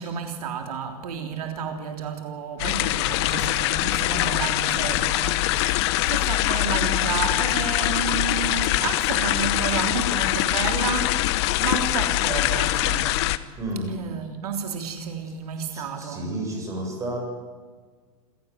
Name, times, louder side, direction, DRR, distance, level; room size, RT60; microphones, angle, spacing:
voice 1, 0.0-13.3 13.9-16.4, right 6 dB, 75° right, 3.4 m, -31 dB
sound 1, 2.6-13.4, left 16 dB, 45° left, 1.1 m, -23 dB
voice 2, 13.6-13.9 15.7-17.2, right 1 dB, 15° right, 7.7 m, -31 dB
28.5 x 17.0 x 9.4 m
supercardioid pair, 155°, 19 cm